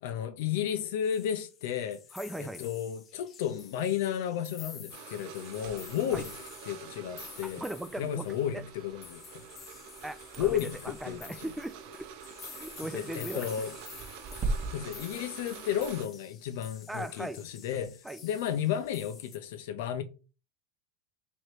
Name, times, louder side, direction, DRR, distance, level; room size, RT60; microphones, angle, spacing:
voice 1, 0.0-2.0 2.4-6.3 6.7-7.6 8.0-9.4 10.4-11.2 12.9-13.7 14.7-20.0, left 9 dB, 75° left, 0.6 m, -33 dB
sound 1, 1.0-19.4, left 7 dB, 35° left, 0.6 m, -50 dB
voice 2, 2.1-2.6 6.1-6.3 7.4-8.3 8.5-8.6 10.0-12.1 12.5-13.5 16.9-17.4 18.0-18.2, right 1 dB, 5° right, 0.4 m, -39 dB
sound 2, 4.9-16.1, right 9 dB, 65° right, 0.7 m, -48 dB
sound 3, 5.6-16.0, right 3 dB, 30° right, 1.0 m, -42 dB
3.2 x 3.1 x 4.5 m
supercardioid pair, 125°, 0 cm